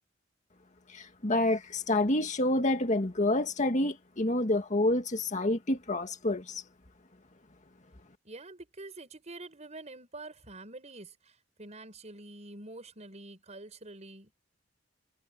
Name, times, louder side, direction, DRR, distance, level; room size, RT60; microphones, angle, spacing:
voice 1, 0.9-6.6, left 1 dB, 40° left, 1.9 m, -28 dB
voice 2, 8.2-14.3, right 2 dB, 35° right, 5.5 m, -46 dB
head